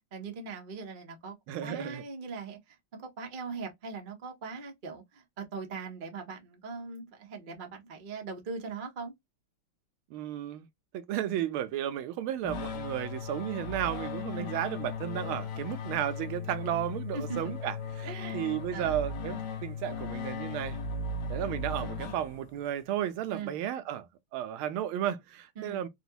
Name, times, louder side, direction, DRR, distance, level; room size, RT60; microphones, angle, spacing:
voice 1, 0.1-1.3 1.6-2.6 2.9-9.1 14.3-14.6 17.1-17.4 18.0-18.4 18.7-18.9 23.3-23.5 25.6-25.8, right 5 dB, 60° right, 0.5 m, -40 dB
voice 2, 1.5-2.0 10.1-10.7 10.9-20.8 21.3-24.1 24.3-25.9, right 11 dB, 80° right, 1.4 m, -33 dB
sound 1, 12.4-22.7, left 4 dB, 65° left, 1.2 m, -37 dB
4.1 x 2.3 x 2.7 m
omnidirectional pair, 2.3 m